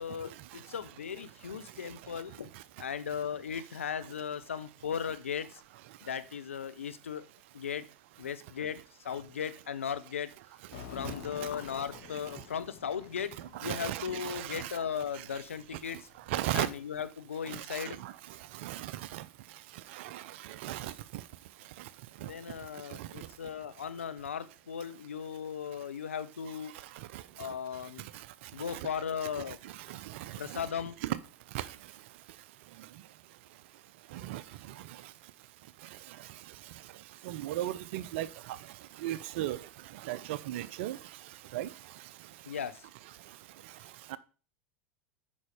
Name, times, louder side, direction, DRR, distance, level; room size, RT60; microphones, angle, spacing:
voice 1, 0.0-2.5 2.8-5.6 6.0-7.2 7.5-7.8 8.2-10.3 10.9-13.3 13.6-16.1 16.5-18.0 22.2-26.7 27.4-28.1 28.5-29.6 30.4-31.0 42.4-42.9, left 7 dB, 90° left, 0.7 m, -37 dB
sound 1, 10.7-16.4, left 9 dB, 60° left, 1.7 m, -48 dB
voice 2, 13.4-14.8 15.1-15.3 16.3-16.7 17.5-18.1 18.5-19.2 19.9-21.2 22.2-22.3 22.9-23.1 27.1-27.2 28.7-28.9 29.5-30.7 31.0-31.2 31.5-31.7 34.1-34.4 34.8-34.9 37.2-38.6 39.0-39.6 39.9-41.0 41.5-41.7 44.1-44.2, right 14 dB, 65° right, 0.7 m, -36 dB
8.5 x 5.6 x 5.0 m
hypercardioid pair, 90°, 7 cm